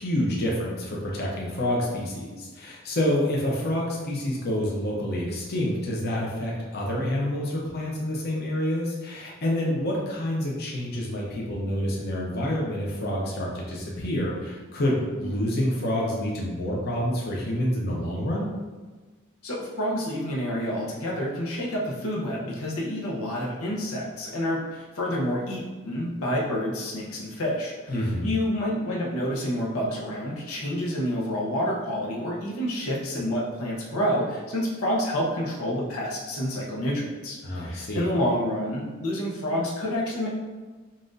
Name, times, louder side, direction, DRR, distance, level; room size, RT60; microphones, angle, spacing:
voice 1, 0.0-18.5 27.9-28.3 37.4-38.0, left 1 dB, 50° left, -4 dB, 0.7 m, -28 dB
voice 2, 19.4-40.3, equal, 85° left, -3 dB, 0.8 m, -28 dB
5.7 x 2.5 x 2.6 m, 1.3 s
head